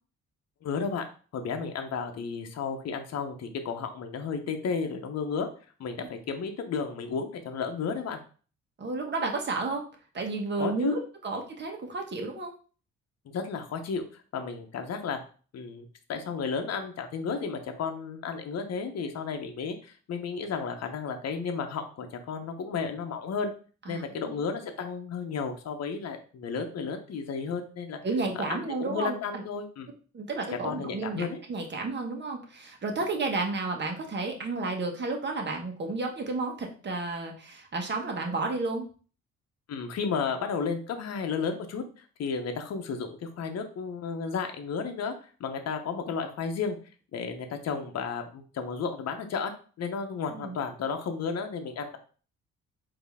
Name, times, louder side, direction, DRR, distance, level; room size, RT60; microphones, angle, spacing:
voice 1, 0.6-1.0 1.3-5.5 5.8-8.2 10.6-10.9 13.3-14.0 14.3-15.2 15.5-23.5 23.9-28.0 28.5-29.9 30.6-31.4 39.7-45.1 45.4-46.8 47.1-49.5 49.8-52.0, left 5 dB, 55° left, 5 dB, 0.8 m, -33 dB
voice 2, 8.8-9.8 10.1-12.5 23.9-24.0 28.0-29.4 30.1-38.9 50.3-50.6, right 3 dB, 35° right, 2 dB, 1.2 m, -32 dB
4.3 x 2.9 x 3.5 m, 0.39 s
cardioid pair, 90°, 30 cm